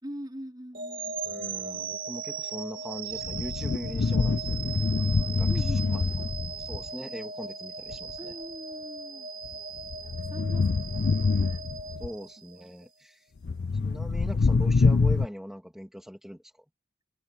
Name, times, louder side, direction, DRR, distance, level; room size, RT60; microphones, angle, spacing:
voice 1, 0.0-1.2 1.6-1.7 5.5-6.8 8.2-9.3 10.3-11.6 13.4-14.0, equal, 20° right, 4.0 m, -44 dB
sound 1, 0.7-12.9, right 5 dB, 50° right, 2.4 m, -38 dB
voice 2, 1.2-4.8 5.3-6.0 6.6-8.4 12.0-13.3 13.8-16.6, equal, ahead, 2.0 m, -41 dB
sound 2, 3.1-6.9 7.9-8.2 9.5-12.1 13.4-15.3, left 4 dB, 60° left, 0.5 m, -26 dB
head